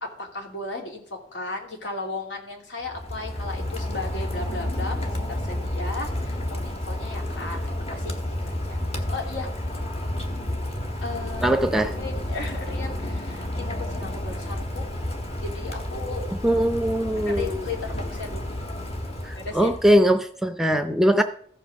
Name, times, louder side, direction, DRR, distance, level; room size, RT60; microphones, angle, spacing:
voice 1, 0.0-8.2 8.4-8.8 9.1-9.6 11.0-11.6 12.0-14.9 15.4-16.2 16.5-16.6 17.3-18.5 19.3-19.7, left 3 dB, 80° left, 2 dB, 2.7 m, -35 dB
Rain, 2.8-20.1, left 1 dB, 35° left, 1.3 m, -31 dB
voice 2, 11.4-11.9 16.4-17.6 19.2-21.2, equal, ahead, 8 dB, 0.5 m, -21 dB
14.5 x 5.5 x 6.2 m, 0.62 s
head